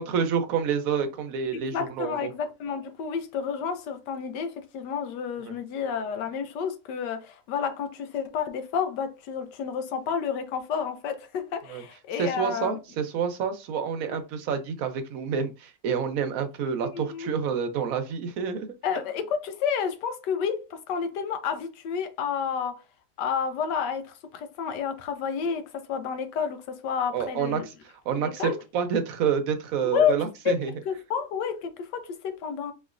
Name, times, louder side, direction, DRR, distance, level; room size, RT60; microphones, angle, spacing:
voice 1, 0.0-2.3 5.5-5.6 11.7-11.8 12.2-18.8 27.1-30.7, right 7 dB, 65° right, 1.0 m, -28 dB
voice 2, 1.5-12.8 14.1-14.2 16.9-17.3 18.8-22.8 23.2-27.7 28.2-28.6 29.8-30.2 30.4-32.7, left 7 dB, 75° left, 1.2 m, -30 dB
5.1 x 3.2 x 2.5 m
omnidirectional pair, 1.9 m